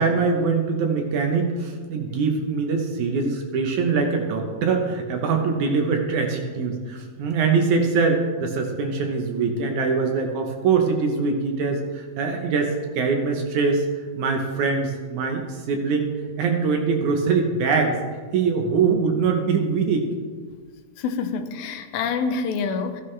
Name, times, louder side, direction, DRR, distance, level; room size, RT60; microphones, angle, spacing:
voice 1, 0.0-13.8 14.2-18.0 18.3-20.1, right 4 dB, 70° right, 3 dB, 2.1 m, -23 dB
voice 2, 21.0-23.0, left 5 dB, 90° left, 8 dB, 2.6 m, -27 dB
15.0 x 11.0 x 3.3 m, 1.6 s
omnidirectional pair, 4.1 m